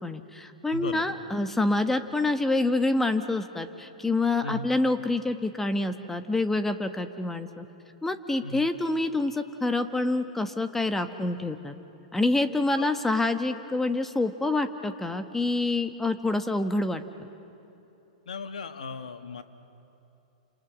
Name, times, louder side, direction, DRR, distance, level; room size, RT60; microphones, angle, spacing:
voice 1, 0.0-7.6 8.0-11.7 12.1-17.0, left 2 dB, 10° left, 8 dB, 1.4 m, -27 dB
voice 2, 0.7-1.1 4.4-4.7 8.4-8.7 12.8-12.9 18.3-19.4, left 3 dB, 80° left, 8 dB, 1.7 m, -36 dB
29.5 x 27.5 x 6.4 m, 2.9 s
hypercardioid pair, 115°, 4 cm